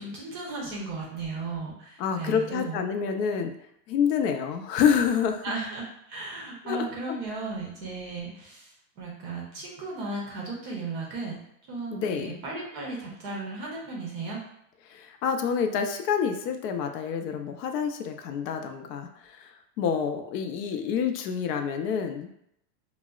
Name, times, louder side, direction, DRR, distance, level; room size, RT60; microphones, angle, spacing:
voice 1, 0.0-2.8 5.4-8.7 9.0-11.4 11.7-14.4, right 3 dB, 30° right, -2 dB, 0.5 m, -35 dB
voice 2, 2.0-3.5 3.9-5.4 6.6-7.2 11.9-12.4 14.9-22.3, left 7 dB, 75° left, 6 dB, 0.6 m, -28 dB
4.0 x 2.0 x 2.3 m, 0.74 s
supercardioid pair, 150°, 49 cm